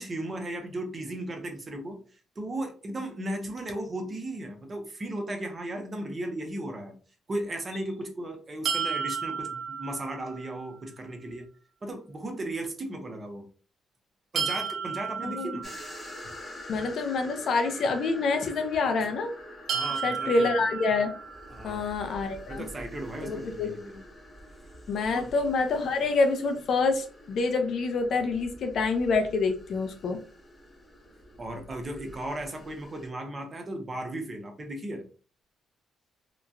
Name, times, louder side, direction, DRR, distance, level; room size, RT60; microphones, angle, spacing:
voice 1, 0.0-7.0 7.3-11.5 11.8-13.5 14.3-15.7 19.7-20.6 21.5-21.8 22.5-24.0 25.1-25.3 31.4-35.0, right 1 dB, 35° right, 4 dB, 0.7 m, -36 dB
sound 1, 8.6-10.6 14.3-16.4 19.7-21.7, right 6 dB, 70° right, 0.4 m, -33 dB
voice 2, 15.2-15.6 16.7-19.3 20.0-21.1 21.6-22.6 23.2-23.7 24.9-30.2, left 3 dB, 65° left, 6 dB, 0.6 m, -27 dB
sound 2, 15.6-33.1, left 1 dB, 25° left, 0.7 m, -46 dB
2.9 x 2.2 x 2.6 m, 0.39 s
cardioid pair, 90°, 0 cm